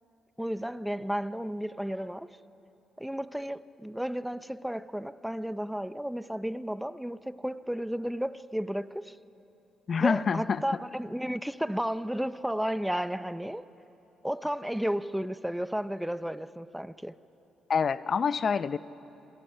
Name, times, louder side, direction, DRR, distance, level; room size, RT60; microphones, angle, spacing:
voice 1, 0.4-2.4 3.0-9.2 10.0-13.7 14.2-17.2, equal, 5° right, 0.6 m, -33 dB
voice 2, 9.9-10.6 17.7-18.8, left 6 dB, 45° left, 0.6 m, -26 dB
27.5 x 27.0 x 5.6 m
cardioid pair, 90°, 0 cm